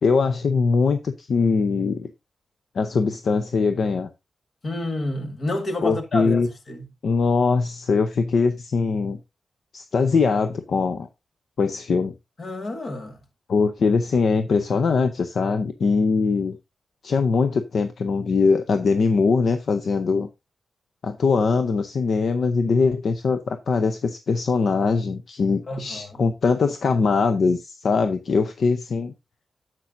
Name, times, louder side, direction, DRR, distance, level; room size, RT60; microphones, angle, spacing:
voice 1, 0.0-2.1 2.7-4.1 5.8-6.5 7.0-9.2 9.7-11.1 11.6-12.1 13.5-16.6 17.0-20.3 21.0-29.1, left 4 dB, 60° left, 0.7 m, -22 dB
voice 2, 4.6-6.9 12.4-13.2 25.7-26.2, left 1 dB, 40° left, 1.7 m, -29 dB
10.0 x 7.6 x 2.6 m
wide cardioid pair, 140°, 0 cm